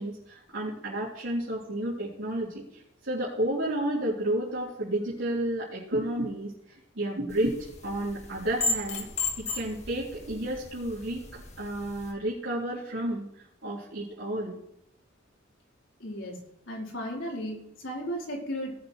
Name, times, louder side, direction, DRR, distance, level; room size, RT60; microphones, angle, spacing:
voice 1, 0.0-6.5 7.0-7.6 7.8-9.1 9.4-13.3 13.6-14.6, right 1 dB, 85° right, -8 dB, 3.7 m, -31 dB
sound 1, 7.3-12.1, left 3 dB, 35° left, 1.7 m, -35 dB
voice 2, 16.0-18.8, equal, 75° left, -3 dB, 4.3 m, -35 dB
19.0 x 8.1 x 3.2 m, 0.79 s
head